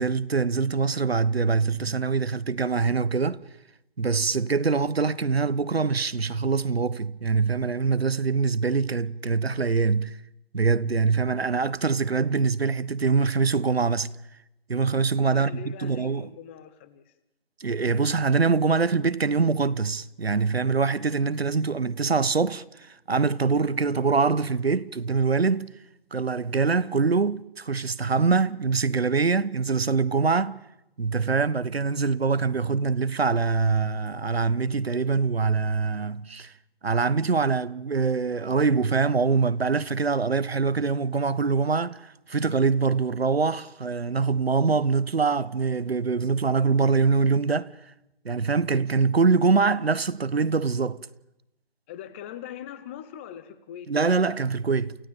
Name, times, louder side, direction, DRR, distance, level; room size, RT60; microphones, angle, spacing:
voice 1, 0.0-3.4 4.0-10.2 10.5-14.1 14.7-16.3 17.6-22.6 23.1-25.7 26.1-30.6 31.0-36.5 36.8-47.7 48.2-51.0 53.9-55.0, right 4 dB, 80° right, 1.3 m, -24 dB
voice 2, 15.3-17.1 51.9-53.9, left 10 dB, 10° left, 0.8 m, -41 dB
29.0 x 16.5 x 9.0 m
figure-of-eight pair, 155°, 30 cm